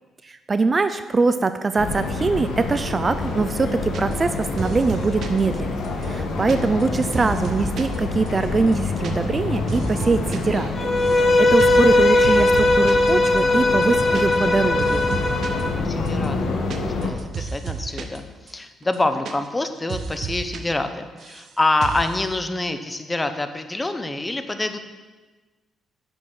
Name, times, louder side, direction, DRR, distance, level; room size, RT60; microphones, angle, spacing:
voice 1, 0.2-15.1, right 3 dB, 30° right, 11 dB, 0.4 m, -23 dB
sound 1, 1.8-17.1, left 3 dB, 75° left, 1.5 m, -27 dB
sound 2, 3.9-4.3 4.6-5.4 5.8-8.0 8.3-8.4 8.6-9.1 9.4-10.4 10.7-11.3 11.6-11.9 12.2-13.1 13.4-13.5 13.7-14.5 14.8-15.6 16.1-18.2 18.5-18.6 18.8-19.6 19.9-20.6 20.9-21.5 21.8-22.1, right 5 dB, 60° right, 1.0 m, -32 dB
voice 2, 6.1-6.4 15.3-24.8, left 2 dB, 20° left, 8 dB, 0.9 m, -27 dB
Bowed string instrument, 10.8-15.7, left 2 dB, 35° left, 1.5 m, -18 dB
9.7 x 6.9 x 6.1 m, 1.3 s
cardioid pair, 90°, 0 cm